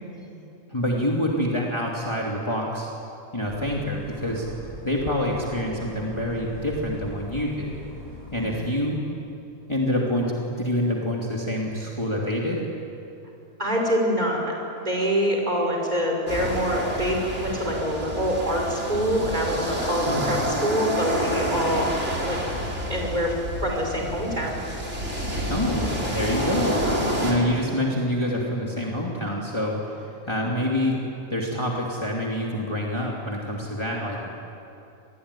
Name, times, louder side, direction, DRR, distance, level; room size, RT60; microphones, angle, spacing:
voice 1, 0.7-2.9 3.3-4.5 4.8-7.7 8.3-9.0 9.7-12.6 20.0-20.4 25.5-31.0 31.3-34.3, left 1 dB, 20° left, -3 dB, 2.8 m, -26 dB
sound 1, 3.5-8.6, left 2 dB, 75° right, 5.3 m, -41 dB
voice 2, 8.4-8.7 13.6-21.8 22.2-22.4 22.9-23.3 23.6-24.6 27.0-27.4, equal, 30° right, 0 dB, 5.8 m, -25 dB
sound 2, 16.3-27.3, equal, 55° right, 4.9 m, -29 dB
27.0 x 21.5 x 9.9 m, 2.8 s
omnidirectional pair, 1.4 m